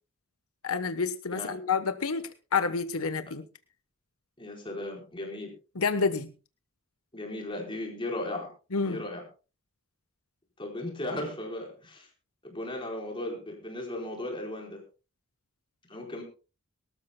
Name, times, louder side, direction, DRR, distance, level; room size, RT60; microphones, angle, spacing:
voice 1, 0.6-3.4 5.7-6.3 8.7-9.0, left 5 dB, 85° left, 10 dB, 1.1 m, -29 dB
voice 2, 4.4-5.5 7.1-8.5 8.8-9.2 10.6-12.1 12.4-14.8 15.9-16.2, left 1 dB, 25° left, 0 dB, 4.5 m, -36 dB
22.5 x 13.0 x 2.2 m, 0.33 s
head